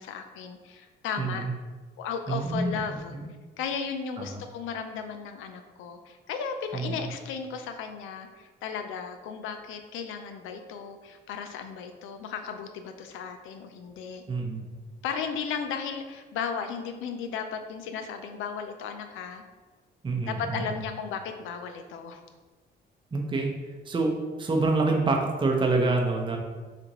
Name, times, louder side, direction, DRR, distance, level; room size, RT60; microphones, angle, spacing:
voice 1, 0.0-1.4 2.0-3.2 3.6-14.2 15.0-19.4 20.3-22.2, left 6 dB, 90° left, 6 dB, 0.4 m, -35 dB
voice 2, 1.2-1.5 2.3-3.3 4.2-4.4 6.7-7.1 14.3-14.6 20.0-20.7 23.1-23.5 23.9-26.4, right 3 dB, 25° right, 1 dB, 0.6 m, -27 dB
6.5 x 2.5 x 3.0 m, 1.3 s
cardioid pair, 90°, 20 cm